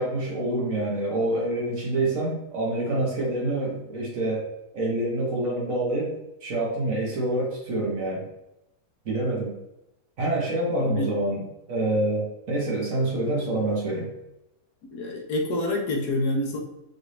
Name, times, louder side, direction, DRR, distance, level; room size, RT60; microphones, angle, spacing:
voice 1, 0.0-4.5 4.7-6.2 6.4-8.2 9.0-9.6 10.2-14.1, right 2 dB, 55° right, -3 dB, 1.6 m, -26 dB
voice 2, 10.8-11.1 14.9-16.6, left 1 dB, 75° left, 1 dB, 1.4 m, -26 dB
6.1 x 2.6 x 3.3 m, 0.89 s
omnidirectional pair, 1.8 m